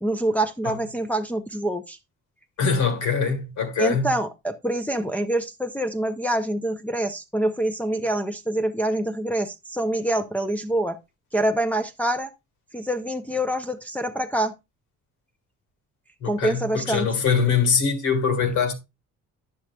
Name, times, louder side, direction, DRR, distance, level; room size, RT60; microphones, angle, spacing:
voice 1, 0.0-2.0 3.8-11.0 11.3-12.3 12.7-14.5 16.3-17.1, right 1 dB, 5° left, 0.5 m, -25 dB
voice 2, 2.6-4.1 16.2-18.7, left 6 dB, 80° left, 1.7 m, -23 dB
10.5 x 6.3 x 2.3 m
cardioid pair, 90°, 30 cm